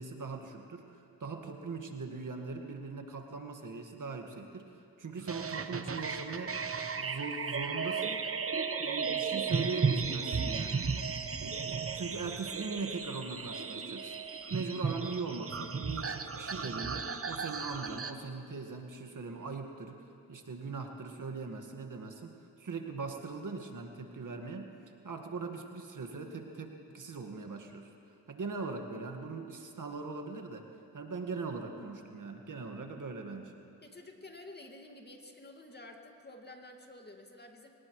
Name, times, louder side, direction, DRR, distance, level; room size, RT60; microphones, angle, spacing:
voice 1, 0.0-4.7 5.0-6.6 7.0-8.2 8.8-10.8 11.4-14.2 14.5-20.0 20.3-24.7 25.0-27.9 28.3-30.7 30.9-33.5, right 4 dB, 50° right, 4 dB, 1.8 m, -40 dB
sound 1, 5.3-18.1, right 5 dB, 35° right, 1.1 m, -35 dB
voice 2, 33.8-37.7, left 2 dB, 25° left, 3 dB, 2.1 m, -50 dB
23.0 x 18.5 x 3.2 m, 2.8 s
supercardioid pair, 50°, 41 cm